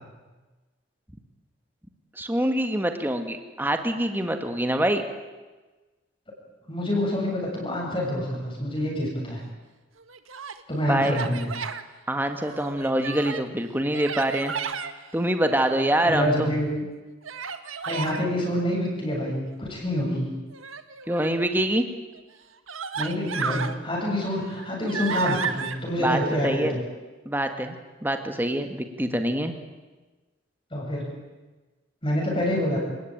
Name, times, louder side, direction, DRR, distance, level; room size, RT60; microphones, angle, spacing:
voice 1, 2.2-5.0 10.9-11.2 12.1-14.5 15.1-16.5 21.1-21.9 26.0-26.7 27.3-27.8 28.0-29.5, right 1 dB, 10° right, 6 dB, 1.9 m, -25 dB
voice 2, 6.7-9.4 10.7-11.5 16.0-16.8 17.9-20.3 23.0-26.8 30.7-31.1 32.0-32.8, equal, 25° left, -2 dB, 7.2 m, -27 dB
Human voice, 10.0-10.6 11.0-11.8 12.4-13.5 13.9-14.9 15.6-16.3 17.2-18.2 20.5-21.4 22.1-22.2 22.7-23.8 24.2-25.8, right 6 dB, 90° right, 1.6 m, -33 dB
28.5 x 18.5 x 9.2 m, 1.2 s
head